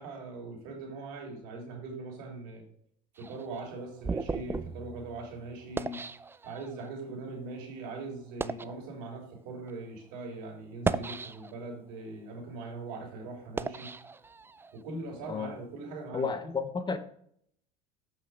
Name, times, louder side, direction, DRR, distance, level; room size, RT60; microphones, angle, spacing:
voice 1, 0.0-2.6 3.2-6.0 6.4-13.9 14.7-16.5, right 3 dB, 75° right, 1 dB, 3.1 m, -41 dB
sound 1, 3.2-6.9 7.6-7.7 8.2-8.8 9.6-9.7 10.6-11.7 12.3-14.8, right 4 dB, 10° right, 0.3 m, -36 dB
voice 2, 16.1-17.0, left 5 dB, 20° left, 11 dB, 0.8 m, -32 dB
7.6 x 5.8 x 4.7 m, 0.66 s
supercardioid pair, 105°, 21 cm